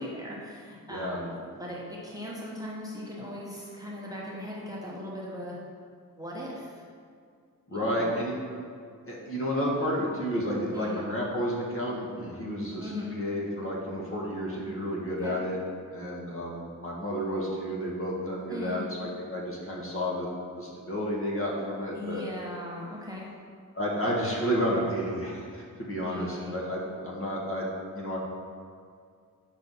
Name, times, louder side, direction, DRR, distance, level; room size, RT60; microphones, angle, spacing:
voice 1, 0.0-5.6 6.2-6.8 7.7-8.2 10.7-11.0 12.8-13.1 15.2-15.4 18.5-18.9 21.9-23.3 24.0-24.2 26.0-26.6, left 1 dB, 10° right, -5 dB, 0.9 m, -39 dB
voice 2, 7.7-8.3 9.1-15.6 15.9-20.3 20.6-22.2 23.7-27.7 27.9-28.2, equal, 40° left, -4 dB, 1.4 m, -31 dB
6.0 x 5.5 x 4.0 m, 2.2 s
wide cardioid pair, 125°, 35 cm